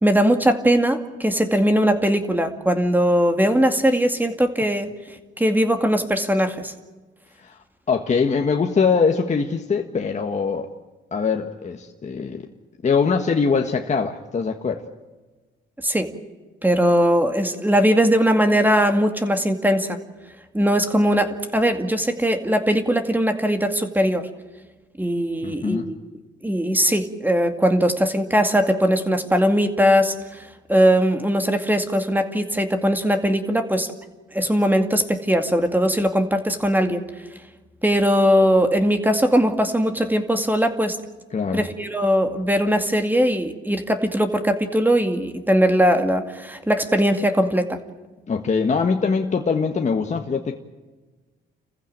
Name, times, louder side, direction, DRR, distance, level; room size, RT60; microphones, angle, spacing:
voice 1, 0.0-4.9 5.4-6.7 15.8-16.1 16.6-20.0 20.5-24.3 25.0-26.0 26.4-33.9 34.3-37.0 37.8-41.0 41.5-47.8, equal, 10° right, 6 dB, 2.2 m, -20 dB
voice 2, 7.9-10.7 11.1-12.4 12.8-14.8 25.4-25.9 41.3-41.7 48.3-50.6, left 5 dB, 35° left, 3 dB, 1.6 m, -22 dB
28.5 x 15.5 x 8.9 m, 1.3 s
cardioid pair, 90°, 20 cm